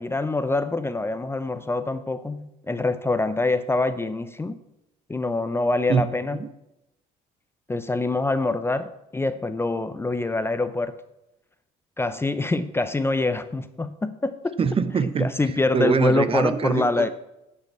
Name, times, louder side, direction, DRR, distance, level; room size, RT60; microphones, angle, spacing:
voice 1, 0.0-4.6 5.1-6.4 7.7-10.9 12.0-14.6 15.2-17.1, left 2 dB, 15° left, 12 dB, 0.6 m, -25 dB
voice 2, 14.6-15.3 15.7-17.1, right 6 dB, 35° right, 13 dB, 0.8 m, -23 dB
10.5 x 5.6 x 8.3 m, 0.89 s
cardioid pair, 110°, 17 cm